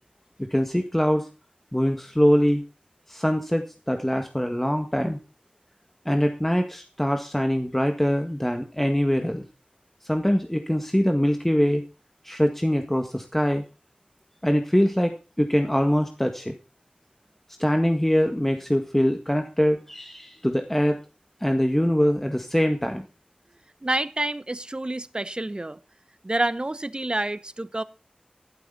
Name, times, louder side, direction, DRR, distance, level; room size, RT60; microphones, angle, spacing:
voice 1, 0.4-1.3 1.7-2.6 3.1-5.2 6.0-9.4 10.0-11.8 12.2-13.6 14.4-16.5 17.6-21.0 21.4-23.1, equal, 10° left, 6 dB, 1.7 m, -23 dB
voice 2, 23.8-25.8 26.2-27.8, right 2 dB, 35° right, 15 dB, 1.0 m, -28 dB
12.5 x 12.0 x 4.0 m, 0.32 s
wide cardioid pair, 45°, 3 cm